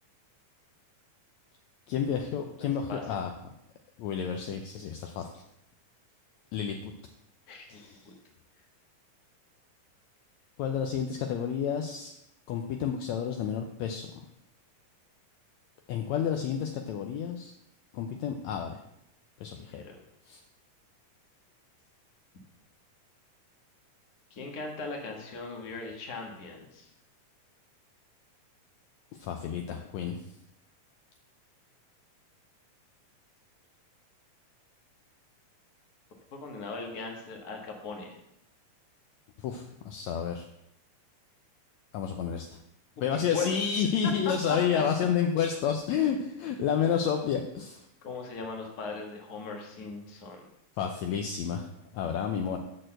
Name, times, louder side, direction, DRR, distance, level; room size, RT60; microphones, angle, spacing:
voice 1, 1.9-3.3 4.0-5.4 6.5-6.9 7.7-8.1 10.6-12.1 12.5-14.3 15.9-17.5 17.9-18.8 19.4-19.7 20.3-20.4 29.2-30.2 39.4-40.5 41.9-42.6 43.0-47.8 50.8-52.6, left 8 dB, 75° left, 4 dB, 1.7 m, -30 dB
voice 2, 2.6-3.0 7.5-7.8 19.7-20.0 24.3-26.9 36.3-38.2 43.1-43.9 44.7-44.8 48.0-50.4, left 4 dB, 40° left, 1 dB, 1.5 m, -39 dB
6.6 x 6.5 x 7.6 m, 0.82 s
omnidirectional pair, 3.7 m